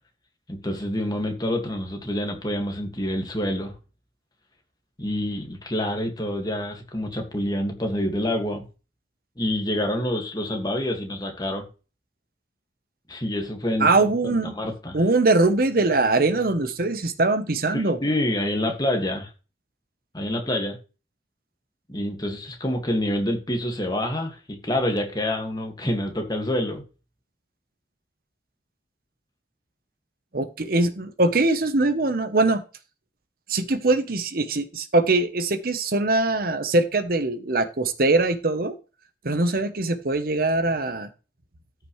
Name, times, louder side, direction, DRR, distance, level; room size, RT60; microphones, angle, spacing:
voice 1, 0.5-3.7 5.0-8.6 9.4-11.6 13.1-15.0 17.7-19.3 20.1-20.8 21.9-24.4 24.6-26.8, left 1 dB, 20° left, 1.9 m, -27 dB
voice 2, 13.8-14.5 14.9-18.0 30.3-32.6 33.5-38.7 39.2-41.1, right 2 dB, 55° right, 0.9 m, -22 dB
14.0 x 6.0 x 3.2 m
head